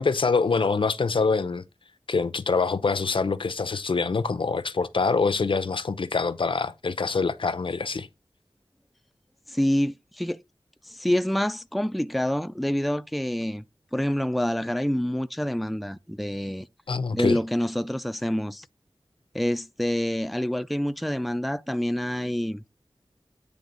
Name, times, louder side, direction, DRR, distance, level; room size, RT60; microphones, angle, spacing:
voice 1, 0.0-1.6 2.1-8.1 16.9-17.4, left 4 dB, 75° left, 0.6 m, -25 dB
voice 2, 9.5-10.4 10.9-13.6 13.9-16.7 17.1-18.7 19.3-22.6, equal, ahead, 0.4 m, -27 dB
9.1 x 3.4 x 5.3 m
wide cardioid pair, 70°, 9 cm